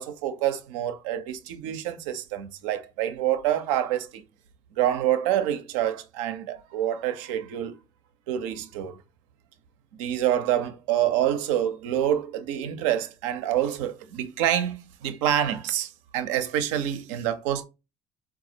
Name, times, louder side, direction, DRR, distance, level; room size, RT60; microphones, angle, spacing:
voice 1, 0.0-4.2 4.8-7.7 8.3-9.0 10.0-17.6, right 11 dB, 70° right, 0.5 m, -27 dB
3.9 x 2.3 x 2.7 m
figure-of-eight pair, 55°, 17 cm